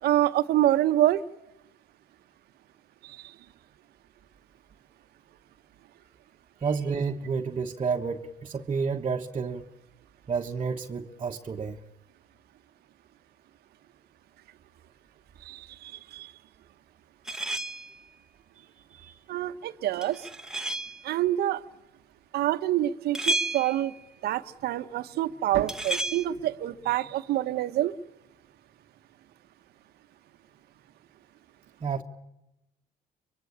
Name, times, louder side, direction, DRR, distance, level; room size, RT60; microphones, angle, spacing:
voice 1, 0.0-1.2 3.0-3.3 15.4-16.3 19.3-20.3 21.0-21.6 22.3-23.9 24.2-27.9, right 13 dB, 70° right, 11 dB, 1.0 m, -26 dB
voice 2, 6.6-9.7 10.3-11.8 18.5-19.2 31.8-32.0, right 5 dB, 30° right, 1 dB, 1.3 m, -31 dB
sound 1, 17.3-18.0 20.0-21.1 23.2-24.0 25.7-26.3, right 2 dB, 5° right, 1.3 m, -31 dB
24.5 x 23.5 x 8.7 m, 0.91 s
cardioid pair, 110°, 17 cm